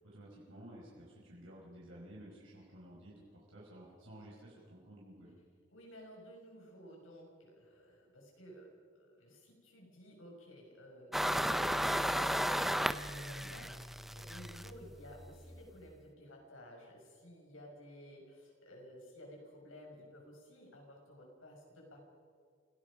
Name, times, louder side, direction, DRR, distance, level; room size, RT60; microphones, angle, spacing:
voice 1, 0.0-5.3 13.4-13.7, right 1 dB, 80° right, -5 dB, 5.2 m, -53 dB
voice 2, 5.7-22.0, equal, 90° left, 0 dB, 6.5 m, -54 dB
sound 1, 11.1-15.7, equal, ahead, 0.6 m, -35 dB
28.5 x 17.5 x 5.2 m, 2.1 s
head